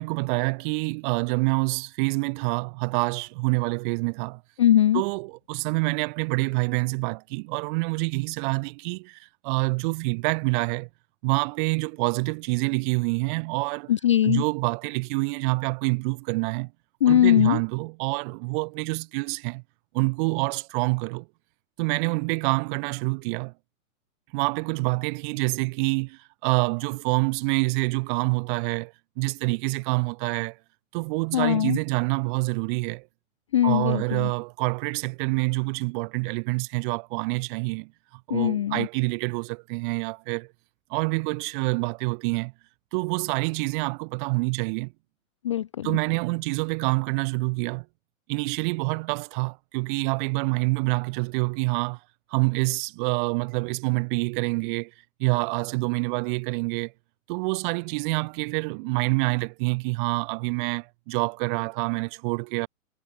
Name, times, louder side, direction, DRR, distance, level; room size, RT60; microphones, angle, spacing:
voice 1, 0.0-4.4 4.9-10.9 11.2-13.9 14.2-16.7 17.1-19.6 19.9-21.3 21.8-23.5 24.3-30.6 30.9-33.1 33.6-40.5 40.9-42.5 42.9-44.9 45.8-47.9 48.3-52.0 52.3-54.9 55.2-56.9 57.3-62.7, right 29 dB, 35° right, 6.2 m, -27 dB
voice 2, 4.6-5.0 13.9-14.4 17.0-17.6 31.3-31.8 33.5-34.3 38.3-38.9 45.4-45.9, left 11 dB, 25° left, 0.4 m, -21 dB
hypercardioid pair, 160°, 42 cm